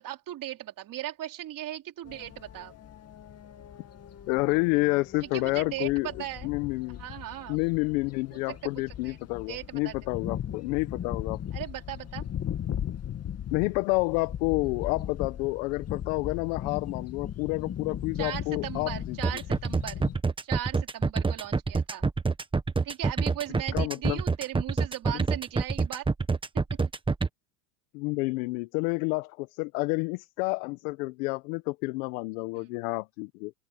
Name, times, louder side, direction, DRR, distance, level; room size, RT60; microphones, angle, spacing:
voice 1, 0.0-2.7 5.2-6.5 7.0-7.6 8.5-9.2 9.5-10.0 11.5-12.3 18.2-20.0 20.4-22.0 22.8-26.1 32.5-32.7, right 13 dB, 45° right, 3.4 m, -38 dB
sound 1, 2.1-20.2, left 10 dB, 35° left, 2.3 m, -38 dB
voice 2, 4.3-6.1 6.4-7.0 7.5-11.4 13.5-19.2 23.7-24.2 27.9-33.5, left 25 dB, 75° left, 1.1 m, -29 dB
sound 2, 19.2-27.3, right 4 dB, 10° right, 1.3 m, -26 dB
open air
supercardioid pair, 115°, 45 cm